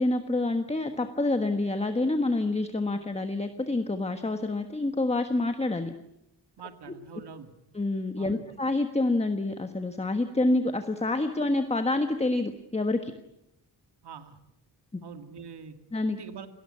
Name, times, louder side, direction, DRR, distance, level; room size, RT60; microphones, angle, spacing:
voice 1, 0.0-5.9 7.7-13.1 14.9-15.0 15.9-16.2, left 2 dB, 15° left, 7 dB, 1.4 m, -27 dB
voice 2, 6.6-7.5 8.2-8.4 14.0-14.4 15.0-15.8 16.1-16.5, right 6 dB, 90° right, 8 dB, 2.1 m, -44 dB
30.0 x 19.0 x 8.7 m, 0.82 s
wide cardioid pair, 150°, 39 cm